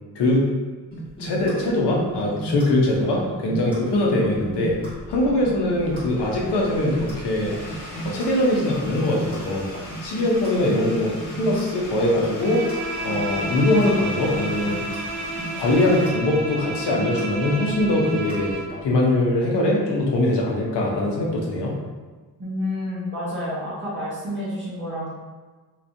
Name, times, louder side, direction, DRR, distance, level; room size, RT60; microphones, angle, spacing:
sound 1, 0.9-18.8, right 2 dB, 10° left, 1.5 m, -35 dB
voice 1, 1.2-4.7 5.1-7.5 8.0-9.7 10.0-12.6 13.0-14.8 15.5-18.5 18.8-21.7, left 1 dB, 85° left, -2 dB, 0.8 m, -22 dB
sound 2, 4.6-16.1, left 1 dB, 45° left, 0.9 m, -40 dB
Bowed string instrument, 12.4-18.8, right 1 dB, 70° right, 0.6 m, -31 dB
voice 2, 22.4-25.1, left 1 dB, 30° right, -11 dB, 1.4 m, -29 dB
3.2 x 3.0 x 2.6 m, 1.4 s
wide cardioid pair, 160°, 40 cm